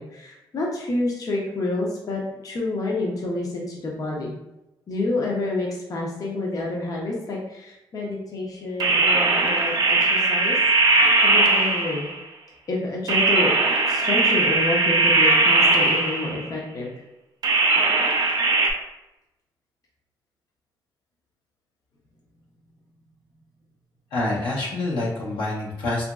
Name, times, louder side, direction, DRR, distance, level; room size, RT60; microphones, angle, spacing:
voice 1, 0.0-4.3 4.9-10.6 10.9-12.1 12.7-13.6 13.9-16.9, left 2 dB, 45° left, -2 dB, 0.6 m, -28 dB
sound 1, 8.8-12.2 13.1-16.5 17.4-18.7, right 3 dB, 55° right, 0.5 m, -19 dB
voice 2, 24.1-26.1, left 2 dB, 85° left, -5 dB, 0.9 m, -26 dB
2.9 x 2.5 x 2.2 m, 0.95 s
cardioid pair, 80°, 8 cm